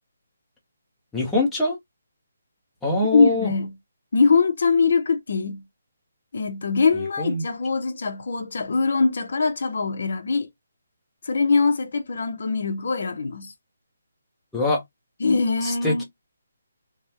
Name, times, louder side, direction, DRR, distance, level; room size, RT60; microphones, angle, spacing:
voice 1, 1.1-1.8 2.8-3.5 6.9-7.4 14.5-14.8 15.6-16.0, left 2 dB, 5° left, 0.7 m, -24 dB
voice 2, 3.1-3.7 4.1-5.6 6.3-10.5 11.2-13.5 15.2-16.0, left 4 dB, 55° left, 0.6 m, -22 dB
3.4 x 2.0 x 2.8 m
hypercardioid pair, 175°, 0 cm